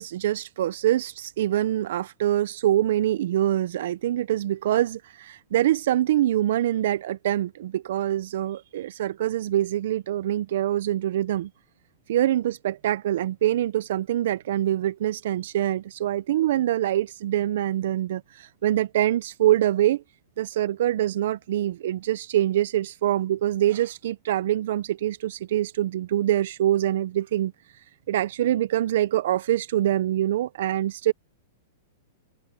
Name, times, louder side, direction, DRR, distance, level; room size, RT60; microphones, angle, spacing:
voice 1, 0.0-11.5 12.1-20.0 20.4-27.5 28.1-31.1, right 12 dB, 65° right, 0.4 m, -24 dB
hypercardioid pair, 145°, 0 cm